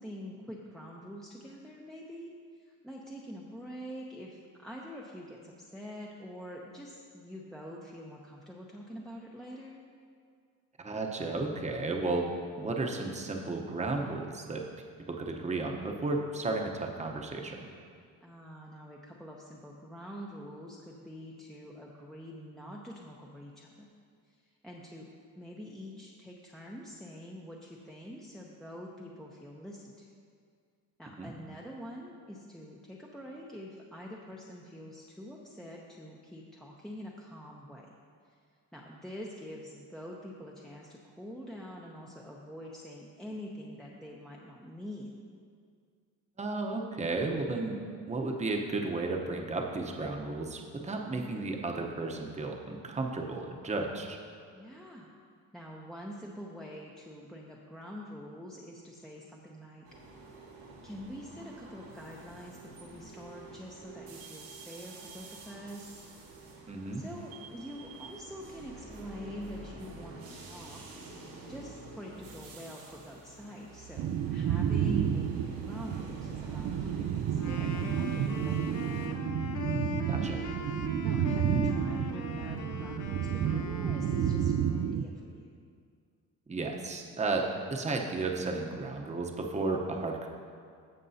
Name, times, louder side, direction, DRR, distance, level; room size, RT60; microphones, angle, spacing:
voice 1, 0.0-9.8 18.2-23.9 24.3-24.4 24.6-25.1 25.4-30.1 31.0-37.9 38.7-45.1 54.5-55.1 55.5-59.8 60.8-66.0 66.9-70.8 71.5-79.2 81.0-85.5, equal, ahead, -3 dB, 0.7 m, -45 dB
voice 2, 10.8-12.3 12.6-14.6 15.1-17.7 31.2-31.3 46.4-47.8 48.1-54.2 66.7-67.0 80.1-80.4 86.5-90.3, right 3 dB, 20° right, 1 dB, 0.9 m, -33 dB
sound 1, 59.8-79.1, right 3 dB, 85° right, 2.2 m, -48 dB
sound 2, 74.0-85.0, right 9 dB, 50° right, 0.4 m, -31 dB
Wind instrument woodwind instrument, 77.3-85.1, left 5 dB, 55° left, 0.7 m, -41 dB
15.5 x 5.3 x 2.8 m, 2.2 s
cardioid pair, 90°, 36 cm